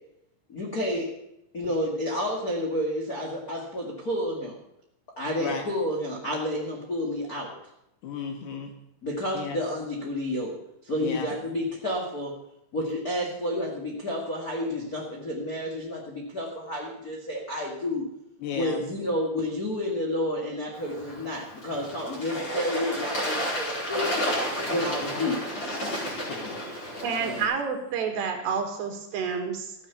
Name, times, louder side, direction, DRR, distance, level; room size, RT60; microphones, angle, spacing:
voice 1, 0.5-1.1 1.5-4.6 5.2-7.5 9.0-10.5 10.8-12.3 12.7-18.0 18.5-24.3 24.7-25.4 27.2-27.4, left 1 dB, 45° left, -3 dB, 1.1 m, -30 dB
voice 2, 8.0-8.7 9.3-9.6 11.0-11.3 18.4-18.8 26.3-26.6 27.1-27.3, left 6 dB, 65° left, 4 dB, 3.2 m, -34 dB
Bird / Water, 20.7-27.4, equal, 25° left, 4.8 m, -32 dB
voice 3, 27.0-29.8, right 6 dB, 65° right, 4 dB, 3.6 m, -29 dB
15.0 x 8.8 x 6.9 m, 0.81 s
omnidirectional pair, 5.5 m